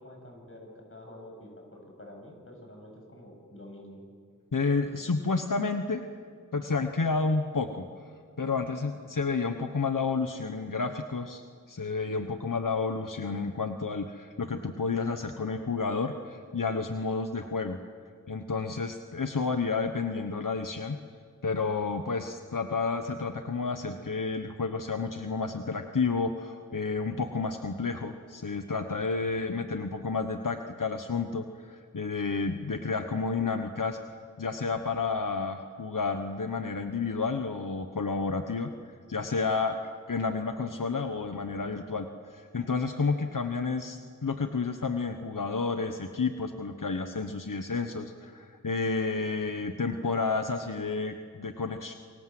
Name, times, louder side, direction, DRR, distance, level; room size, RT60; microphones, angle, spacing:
voice 1, 0.0-4.0, left 1 dB, 40° left, 1 dB, 7.7 m, -48 dB
voice 2, 4.5-6.0 6.5-7.9 8.4-11.4 11.7-17.8 18.3-21.0 21.4-34.0 34.4-38.7 39.1-39.8 40.1-51.9, left 4 dB, 85° left, 7 dB, 1.2 m, -30 dB
28.0 x 23.5 x 7.8 m, 2.1 s
wide cardioid pair, 50°, 32 cm